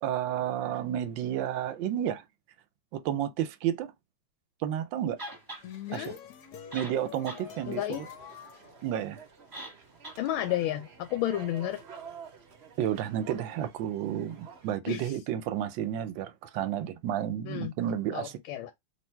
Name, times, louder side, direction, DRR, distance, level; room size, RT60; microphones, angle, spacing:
voice 1, 0.0-2.2 2.9-3.9 4.6-5.2 5.9-6.2 6.7-8.1 8.8-9.2 12.8-18.4, right 10 dB, 75° right, 1.2 m, -31 dB
sound 1, 5.2-5.6 6.4-6.5 6.7-7.4 7.8-7.9 9.5-9.8 10.0-10.2, right 1 dB, 15° right, 1.1 m, -41 dB
sound 2, 5.3-9.6, left 9 dB, 65° left, 1.0 m, -46 dB
sound 3, 7.4-14.8, right 6 dB, 50° right, 0.8 m, -50 dB
voice 2, 7.7-8.0 10.2-11.8 14.9-15.2 17.4-17.7 18.1-18.7, left 13 dB, 85° left, 1.4 m, -32 dB
3.3 x 2.5 x 4.4 m
omnidirectional pair, 2.2 m